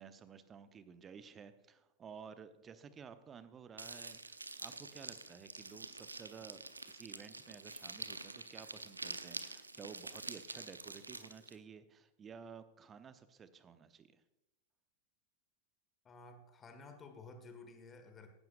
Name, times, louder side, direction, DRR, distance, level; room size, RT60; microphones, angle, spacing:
voice 1, 0.0-14.2, right 6 dB, 25° right, 12 dB, 0.8 m, -54 dB
sound 1, 3.8-11.6, right 3 dB, 80° right, 0.6 m, -47 dB
voice 2, 16.0-18.3, left 3 dB, 20° left, 6 dB, 1.7 m, -53 dB
16.0 x 12.0 x 2.5 m, 0.96 s
figure-of-eight pair, 90°, 0 cm